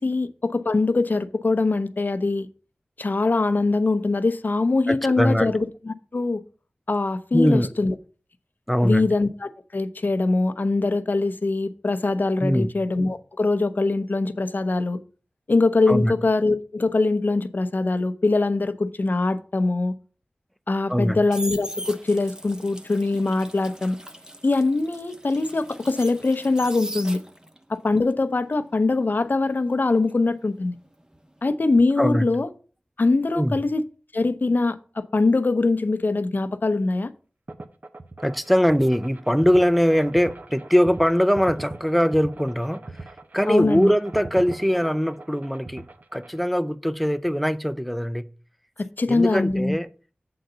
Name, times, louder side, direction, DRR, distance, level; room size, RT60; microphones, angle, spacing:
voice 1, 0.0-2.5 3.0-6.4 6.9-7.9 8.8-15.0 15.5-19.9 20.7-24.0 24.4-27.2 27.7-30.7 31.4-32.5 33.0-33.8 34.1-37.1 43.5-43.9 48.8-49.8, left 3 dB, 60° left, 0.7 m, -23 dB
voice 2, 4.9-5.5 7.3-7.7 8.7-9.1 12.4-12.7 15.9-16.1 20.9-21.2 32.0-32.3 33.3-33.6 38.2-42.8 43.3-45.9 46.1-48.3 49.1-49.9, equal, ahead, 0.6 m, -21 dB
sound 1, 20.9-27.6 28.0-30.9 31.1-31.5, right 1 dB, 20° right, 1.0 m, -39 dB
sound 2, 37.5-46.4, right 2 dB, 50° right, 0.9 m, -40 dB
7.7 x 3.9 x 6.7 m
wide cardioid pair, 45°, 4 cm